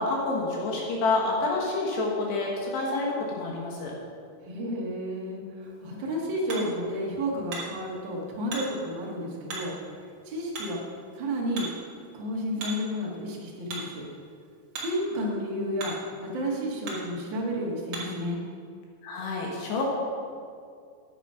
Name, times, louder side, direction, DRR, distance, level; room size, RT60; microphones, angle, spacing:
voice 1, 0.0-3.9 19.0-19.9, left 3 dB, 70° left, -2 dB, 3.2 m, -28 dB
voice 2, 4.5-9.7 10.2-10.8 11.2-11.7 12.1-14.0 14.8-18.4, equal, 80° right, -4 dB, 1.0 m, -31 dB
Hammer, 5.6-18.3, right 3 dB, 45° right, 2.3 m, -42 dB
10.5 x 9.2 x 5.7 m, 2.3 s
omnidirectional pair, 5.5 m